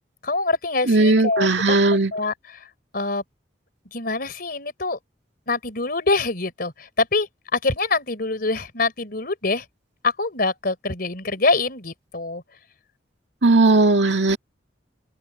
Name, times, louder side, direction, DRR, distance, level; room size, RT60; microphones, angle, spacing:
voice 1, 0.2-1.8 2.1-2.7 2.9-3.2 3.9-5.0 5.5-9.6 10.0-12.4, left 3 dB, 55° left, 4.0 m, -25 dB
voice 2, 0.9-2.1 13.4-14.4, right 2 dB, 75° right, 2.1 m, -17 dB
open air
head